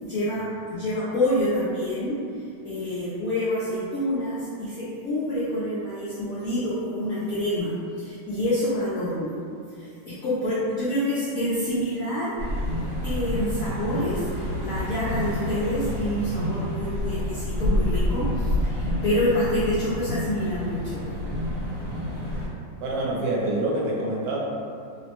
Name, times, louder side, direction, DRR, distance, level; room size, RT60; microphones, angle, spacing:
voice 1, 0.0-2.2 2.6-9.3 9.8-12.4 13.0-21.0, left 1 dB, 80° left, -10 dB, 0.7 m, -27 dB
sound 1, 12.4-22.5, left 1 dB, 55° right, 1.4 m, -28 dB
voice 2, 22.8-24.4, right 1 dB, 75° right, -4 dB, 1.2 m, -26 dB
3.0 x 2.1 x 2.9 m, 2.4 s
omnidirectional pair, 2.0 m